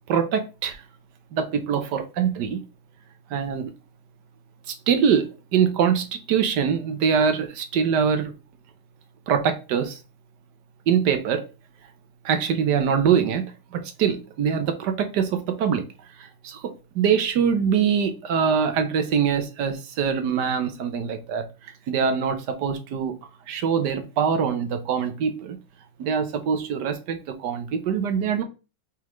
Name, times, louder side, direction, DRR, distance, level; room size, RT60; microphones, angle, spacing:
voice 1, 0.1-0.8 1.3-2.6 3.3-3.7 4.7-8.3 9.3-10.0 10.9-11.4 12.2-13.4 13.7-15.8 16.4-21.5 21.9-23.2 23.5-25.6 26.0-28.4, right 7 dB, 60° right, 1.2 m, -23 dB
8.4 x 3.6 x 3.1 m
omnidirectional pair, 2.4 m